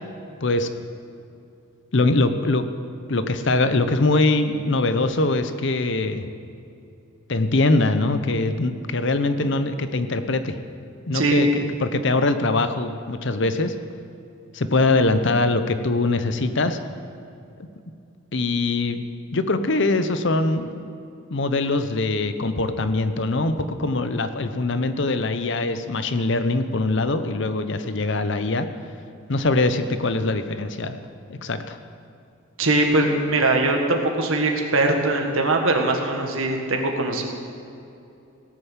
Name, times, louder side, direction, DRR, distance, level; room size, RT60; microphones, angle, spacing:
voice 1, 1.9-2.6 3.1-6.3 7.3-10.6 11.1-13.7 14.5-16.8 18.3-19.0 19.3-20.8 21.3-28.7 29.3-31.0 31.3-31.8, left 2 dB, 55° left, 10 dB, 0.7 m, -22 dB
voice 2, 11.1-11.4 32.6-37.3, right 2 dB, 70° right, 2 dB, 1.7 m, -21 dB
17.0 x 6.8 x 7.3 m, 2.6 s
head